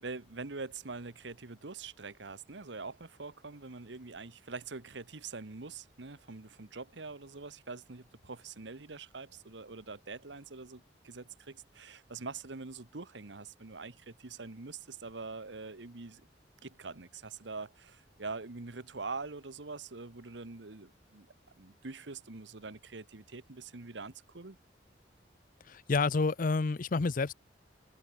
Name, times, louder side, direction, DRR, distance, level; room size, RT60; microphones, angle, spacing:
voice 1, 0.0-16.2 16.6-21.3 21.6-24.6, right 4 dB, 75° right, 1.3 m, -44 dB
voice 2, 25.7-27.3, left 4 dB, 50° left, 0.6 m, -29 dB
head